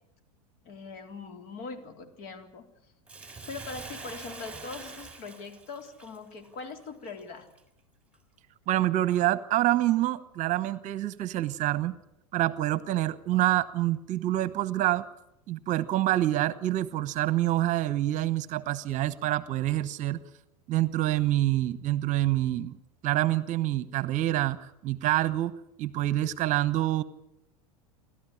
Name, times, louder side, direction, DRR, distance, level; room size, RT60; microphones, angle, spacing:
voice 1, 0.6-2.7 3.4-7.5, left 4 dB, 50° left, 6 dB, 3.8 m, -41 dB
Bathtub (filling or washing), 3.1-7.6 8.1-8.2, right 3 dB, 5° right, 3.8 m, -45 dB
voice 2, 8.7-12.0 12.3-15.0 15.5-20.2 20.7-22.8 23.0-27.0, right 15 dB, 40° right, 17 dB, 1.0 m, -27 dB
28.5 x 13.0 x 9.9 m, 0.82 s
hypercardioid pair, 90°, 19 cm